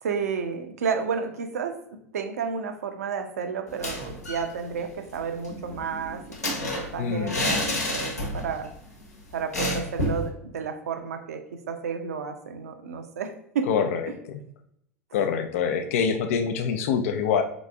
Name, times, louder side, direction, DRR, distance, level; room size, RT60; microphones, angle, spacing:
voice 1, 0.0-1.8 2.1-8.7 9.3-13.7 14.1-14.2 15.3-15.4, right 6 dB, 70° right, 6 dB, 0.6 m, -31 dB
sound 1, 3.7-4.5 4.8-4.9 5.2-8.6 8.9-9.0 9.5-10.3, left 1 dB, 85° left, 1.2 m, -29 dB
voice 2, 7.0-7.5 13.7-14.4 15.1-17.4, left 6 dB, 60° left, 8 dB, 0.5 m, -25 dB
4.0 x 3.0 x 3.4 m, 0.72 s
figure-of-eight pair, 85°, 8 cm